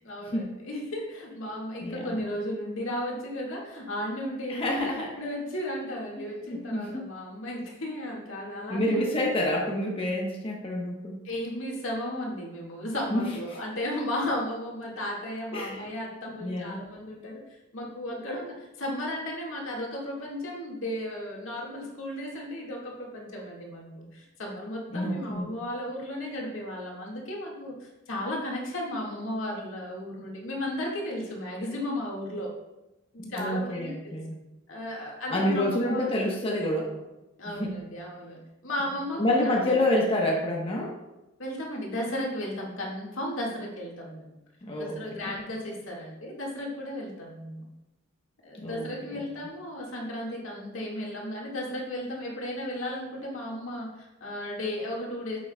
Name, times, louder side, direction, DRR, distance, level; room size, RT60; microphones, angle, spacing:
voice 1, 0.0-9.0 11.2-32.5 33.1-34.2 34.7-36.1 37.4-39.8 41.4-44.4 44.8-47.6 48.4-55.4, left 1 dB, 80° left, -2 dB, 1.9 m, -35 dB
voice 2, 1.8-2.2 4.5-5.1 6.2-7.1 8.7-11.2 13.1-13.3 15.5-15.8 16.4-16.8 24.9-25.5 33.2-34.4 35.3-37.0 37.5-37.7 39.2-40.9 44.6-45.4 48.6-49.2, left 1 dB, 30° left, -2 dB, 1.0 m, -28 dB
9.1 x 7.5 x 2.3 m, 0.99 s
head